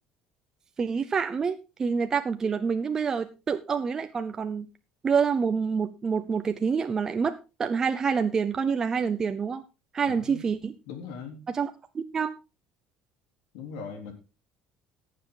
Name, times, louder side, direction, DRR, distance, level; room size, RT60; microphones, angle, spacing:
voice 1, 0.8-4.7 5.0-9.6 9.9-10.7 11.5-12.3, right 6 dB, 25° right, 8 dB, 0.7 m, -27 dB
voice 2, 10.1-10.5 10.9-11.4 13.5-14.1, left 5 dB, 90° left, 4 dB, 3.4 m, -40 dB
17.0 x 7.5 x 3.9 m, 0.31 s
cardioid pair, 140°, 2 cm